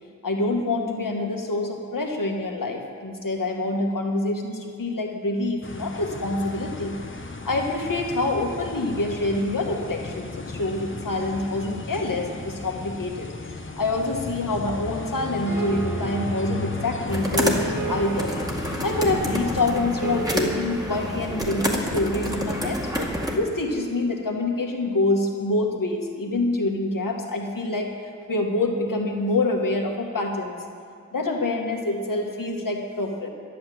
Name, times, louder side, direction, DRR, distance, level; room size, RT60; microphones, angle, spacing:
voice 1, 0.2-6.9 7.5-13.2 13.8-18.3 18.8-22.8 23.4-27.9 28.3-30.6 31.1-33.3, left 2 dB, 75° left, 1 dB, 1.9 m, -26 dB
sound 1, 5.6-19.7, left 3 dB, 40° left, 1.1 m, -35 dB
sound 2, 15.4-22.2 23.0-23.1, right 4 dB, 65° right, 1.9 m, -36 dB
sound 3, 17.1-23.4, equal, 10° right, 2.1 m, -28 dB
12.0 x 9.8 x 7.9 m, 2.4 s
wide cardioid pair, 60°, 33 cm